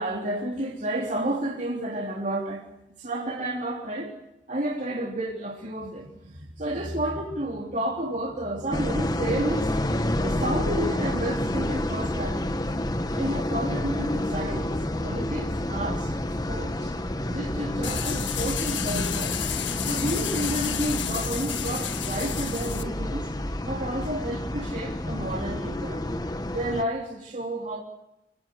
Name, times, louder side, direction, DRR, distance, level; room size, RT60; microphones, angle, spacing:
voice 1, 0.0-2.7 3.0-4.1 4.5-12.6 13.1-14.7 15.0-16.2 16.5-16.9 17.3-19.4 19.8-23.3 23.6-26.0 26.5-27.8, right 1 dB, 40° right, -1 dB, 3.5 m, -31 dB
sound 1, 8.7-26.8, left 1 dB, 20° left, 1.2 m, -29 dB
sound 2, 17.8-22.8, left 10 dB, 85° left, 1.6 m, -32 dB
27.0 x 19.0 x 7.9 m, 0.86 s
head